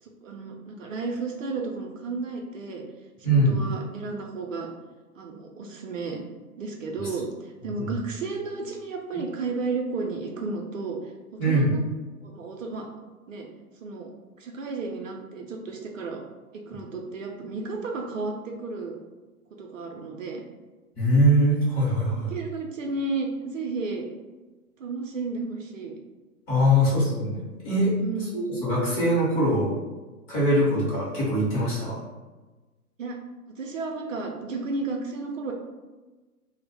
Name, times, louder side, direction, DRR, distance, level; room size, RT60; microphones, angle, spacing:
voice 1, 0.0-2.8 3.2-4.7 5.1-6.2 6.6-11.8 12.2-12.9 13.3-13.5 13.8-16.2 16.7-19.0 19.6-20.4 22.2-24.0 24.8-25.9 26.9-27.0 28.0-28.4 33.0-33.2 33.6-35.5, right 3 dB, 60° right, 1 dB, 0.5 m, -33 dB
voice 2, 3.2-3.6 7.8-7.9 11.4-11.7 21.0-22.3 26.5-27.9 28.2-29.7 30.3-32.0, equal, 20° left, -8 dB, 0.7 m, -22 dB
2.0 x 2.0 x 3.3 m, 1.2 s
figure-of-eight pair, 115°, 46 cm